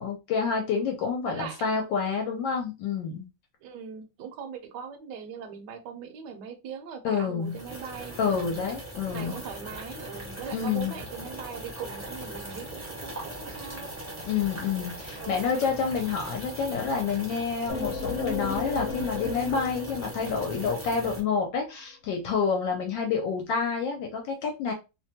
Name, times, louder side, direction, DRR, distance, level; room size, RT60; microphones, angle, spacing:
voice 1, 0.0-3.3 7.0-7.6 8.2-9.4 10.5-11.0 14.2-24.7, left 5 dB, 75° left, 2 dB, 1.3 m, -28 dB
voice 2, 1.3-1.8 3.6-8.7 9.1-13.9 15.2-15.6, right 6 dB, 70° right, 6 dB, 1.1 m, -40 dB
sound 1, 7.4-21.2, right 1 dB, 15° right, 0.6 m, -40 dB
sound 2, 17.7-21.3, left 4 dB, 55° left, 0.9 m, -35 dB
3.1 x 2.2 x 2.7 m, 0.27 s
omnidirectional pair, 2.1 m